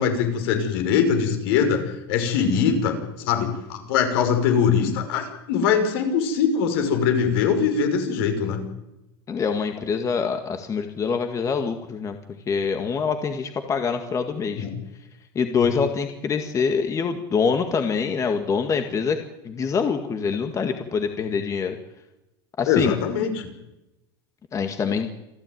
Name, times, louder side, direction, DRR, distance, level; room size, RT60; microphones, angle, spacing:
voice 1, 0.0-8.6 14.5-14.7 15.6-15.7 22.7-23.5, left 6 dB, 70° left, 6 dB, 5.6 m, -22 dB
voice 2, 9.3-12.2 12.5-14.7 15.4-19.2 19.4-21.8 22.6-23.0 24.5-25.1, left 5 dB, 25° left, 6 dB, 2.0 m, -25 dB
27.5 x 14.0 x 9.4 m, 0.94 s
supercardioid pair, 130°, 13 cm